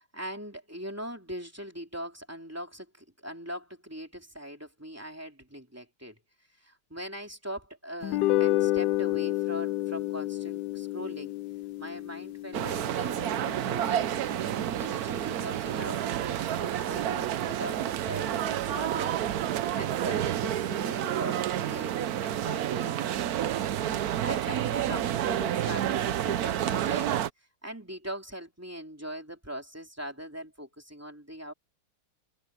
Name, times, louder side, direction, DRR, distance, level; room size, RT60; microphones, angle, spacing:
voice 1, 0.0-6.2 6.6-11.4 11.8-14.2 14.8-19.2 19.6-23.2 24.0-27.2 27.6-31.5, equal, 5° right, 3.0 m, -41 dB
sound 1, 8.0-14.5, left 16 dB, 75° left, 1.0 m, -30 dB
sound 2, 12.5-27.3, right 11 dB, 65° right, 0.9 m, -29 dB
omnidirectional pair, 2.3 m